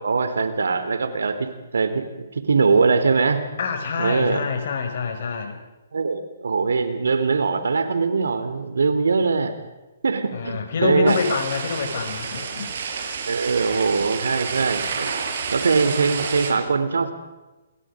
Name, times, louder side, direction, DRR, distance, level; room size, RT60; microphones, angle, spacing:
voice 1, 0.0-3.4 3.9-4.4 5.9-9.5 10.0-11.2 13.3-15.1 15.5-17.1, right 4 dB, 80° right, 10 dB, 3.5 m, -22 dB
voice 2, 3.6-5.6 10.3-12.7, left 5 dB, 60° left, 4 dB, 6.2 m, -26 dB
sound 1, 11.1-16.5, right 5 dB, 60° right, 6.6 m, -30 dB
29.0 x 22.5 x 5.2 m, 1.1 s
hypercardioid pair, 140°, 0 cm